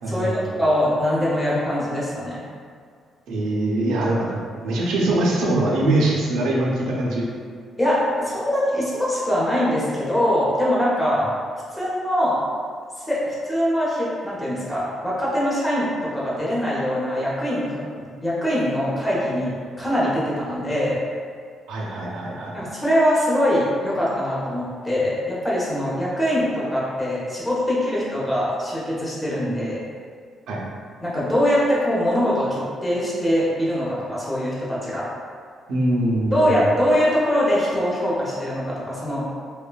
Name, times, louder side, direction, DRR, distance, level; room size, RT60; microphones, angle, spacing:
voice 1, 0.0-0.6 3.3-7.2 21.7-22.5 30.5-30.6 35.7-36.5, right 1 dB, 85° right, -3 dB, 0.5 m, -23 dB
voice 2, 0.6-2.4 7.8-11.2 11.7-12.4 13.0-17.8 18.2-21.0 22.5-29.8 31.0-35.0 36.3-39.3, equal, 10° left, -8 dB, 0.7 m, -22 dB
3.1 x 2.1 x 2.2 m, 2.1 s
cardioid pair, 90°, 0 cm